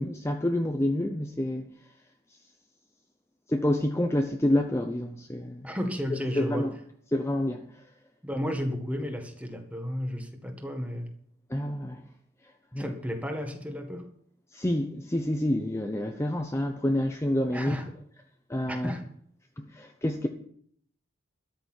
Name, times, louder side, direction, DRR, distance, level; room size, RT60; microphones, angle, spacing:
voice 1, 0.0-1.7 3.5-5.7 6.4-6.7 7.1-7.6 11.5-12.0 12.7-12.8 14.5-17.7 18.5-18.9 19.6-20.3, left 1 dB, 15° left, 0.8 m, -28 dB
voice 2, 5.6-6.7 8.2-11.1 12.8-14.1 17.5-17.9 18.7-19.0, equal, 5° right, 1.7 m, -33 dB
13.0 x 6.7 x 9.5 m
head